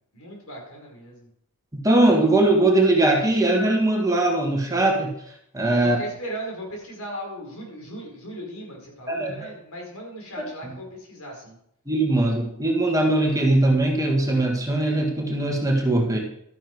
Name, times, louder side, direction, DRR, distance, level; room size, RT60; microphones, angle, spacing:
voice 1, 0.1-1.3 5.8-11.6, equal, 70° left, -1 dB, 5.1 m, -37 dB
voice 2, 1.8-5.1 5.5-6.0 9.1-9.5 10.6-10.7 11.9-16.2, right 2 dB, 15° right, 1 dB, 1.7 m, -20 dB
12.5 x 10.5 x 4.7 m, 0.73 s
head